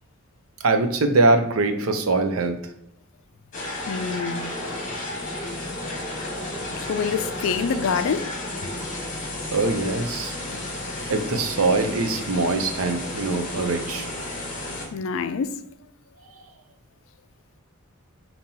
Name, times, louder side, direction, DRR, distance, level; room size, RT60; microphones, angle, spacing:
voice 1, 0.6-2.6 9.5-10.3 11.1-14.1, right 3 dB, 85° right, 0.6 m, -22 dB
sound 1, 3.5-14.9, left 1 dB, 40° left, 1.1 m, -32 dB
voice 2, 3.9-4.5 6.9-8.2 10.5-10.6 14.9-15.5, left 6 dB, 70° left, 0.3 m, -26 dB
5.3 x 2.9 x 2.8 m
head